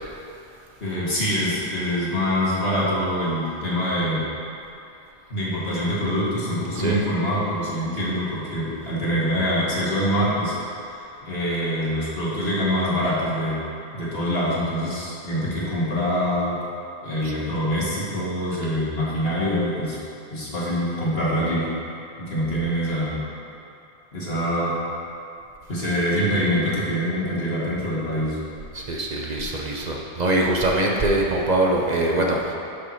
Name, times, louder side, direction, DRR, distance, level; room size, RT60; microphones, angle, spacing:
voice 1, 0.8-4.2 5.3-10.5 10.9-13.6 13.9-16.6 17.0-20.0 20.3-21.7 22.2-23.2 24.1-24.7 25.7-28.4, equal, 75° left, -7 dB, 2.1 m, -24 dB
voice 2, 28.7-32.5, right 2 dB, 45° right, -1 dB, 0.8 m, -23 dB
11.0 x 4.7 x 4.2 m, 2.7 s
omnidirectional pair, 1.0 m